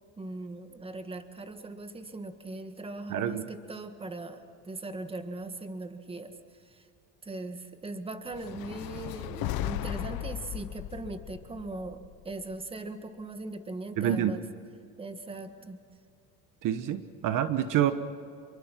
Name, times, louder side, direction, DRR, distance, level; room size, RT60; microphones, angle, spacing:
voice 1, 0.0-6.9 7.2-14.4 15.0-15.8, right 2 dB, 15° right, 8 dB, 1.6 m, -40 dB
voice 2, 3.1-3.4 14.0-14.4 16.6-17.9, right 10 dB, 50° right, 10 dB, 1.2 m, -27 dB
sound 1, 8.3-12.6, left 14 dB, 60° left, 1.1 m, -36 dB
28.5 x 23.0 x 5.9 m, 2.5 s
cardioid pair, 120°, 40 cm